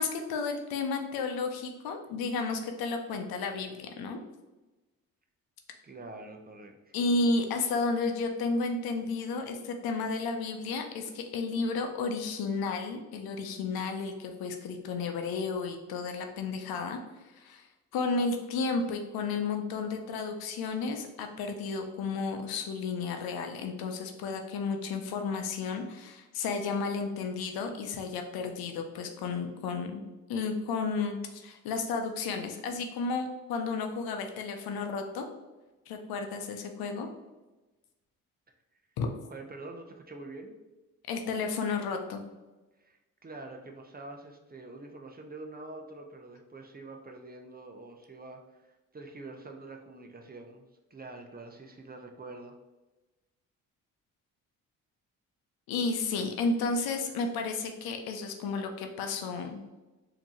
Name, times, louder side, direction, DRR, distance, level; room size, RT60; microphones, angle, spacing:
voice 1, 0.0-4.2 6.9-17.0 17.3-17.6 17.9-30.0 30.3-35.3 35.9-37.1 39.0-39.1 41.1-42.2 55.7-59.6, left 4 dB, 80° left, 5 dB, 0.7 m, -32 dB
voice 2, 5.8-6.9 39.2-40.6 42.8-50.6 50.9-52.5, right 2 dB, 25° right, 3 dB, 0.7 m, -46 dB
4.2 x 2.9 x 2.9 m, 1.1 s
supercardioid pair, 55°, 36 cm